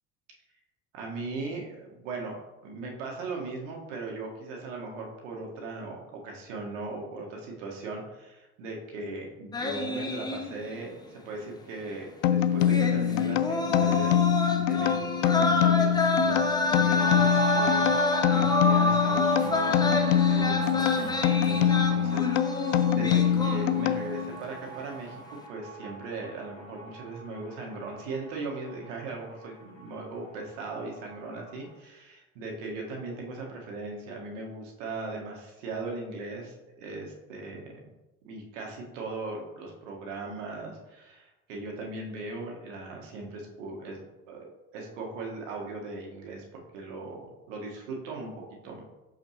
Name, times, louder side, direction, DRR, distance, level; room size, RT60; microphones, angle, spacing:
voice 1, 0.9-37.8 38.2-48.8, right 3 dB, 60° right, 0 dB, 1.5 m, -39 dB
sound 1, 9.5-10.9 11.2-11.3 12.6-24.1 24.4-24.7, left 2 dB, 10° left, 0.6 m, -29 dB
sound 2, 12.2-24.4, left 9 dB, 60° left, 0.5 m, -25 dB
sound 3, 17.0-30.1 30.4-30.5 30.7-31.5, right 4 dB, 30° left, 2.0 m, -37 dB
6.5 x 5.5 x 3.0 m, 1.0 s
figure-of-eight pair, 70°, 43 cm